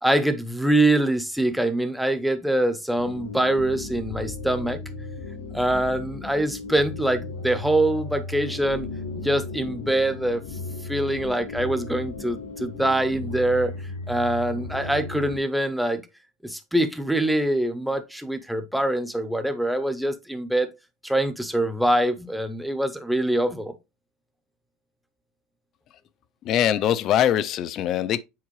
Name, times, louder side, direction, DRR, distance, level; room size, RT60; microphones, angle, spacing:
voice 1, 0.0-4.8 5.5-8.9 9.2-10.4 10.8-13.7 14.1-16.0 16.4-20.7 21.0-23.7, right 1 dB, ahead, 0.7 m, -24 dB
sound 1, 3.0-15.4, left 3 dB, 80° left, 2.8 m, -36 dB
voice 2, 26.4-28.2, left 10 dB, 40° left, 0.5 m, -22 dB
7.5 x 4.6 x 3.2 m
supercardioid pair, 150°, 0 cm